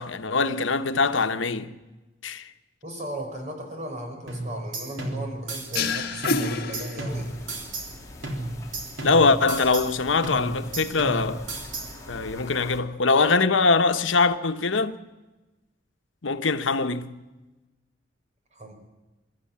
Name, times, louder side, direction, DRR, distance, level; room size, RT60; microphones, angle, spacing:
voice 1, 0.0-1.7 2.2-2.5 9.0-11.5 12.1-15.0 16.2-17.2, left 4 dB, 85° left, 1.1 m, -23 dB
voice 2, 2.8-7.4 18.5-18.7, right 1 dB, 40° right, 4.9 m, -36 dB
sound 1, 4.3-6.0 6.2-8.0 8.2-10.0 10.2-12.0, right 2 dB, 80° right, 3.8 m, -33 dB
sound 2, 5.7-7.5, left 4 dB, 55° left, 1.8 m, -28 dB
sound 3, 7.1-12.8, left 1 dB, 15° left, 3.2 m, -44 dB
23.5 x 13.5 x 8.6 m
head